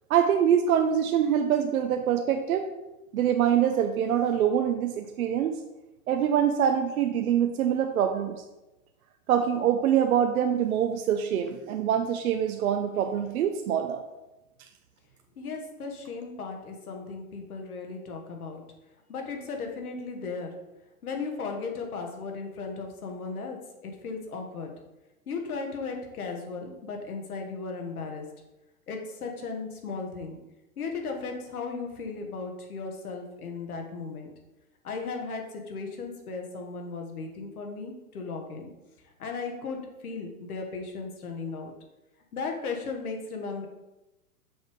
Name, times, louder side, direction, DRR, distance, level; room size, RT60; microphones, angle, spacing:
voice 1, 0.1-2.7 3.1-5.6 6.1-8.4 9.3-14.0, right 9 dB, 75° right, 5 dB, 0.7 m, -24 dB
voice 2, 15.4-18.6 19.1-20.5 21.0-24.7 25.3-28.2 28.9-30.4 30.8-34.3 34.8-38.7 39.2-41.7 42.3-43.7, left 4 dB, 85° left, 3 dB, 1.5 m, -36 dB
6.2 x 3.5 x 4.9 m, 1.0 s
hypercardioid pair, 145°, 43 cm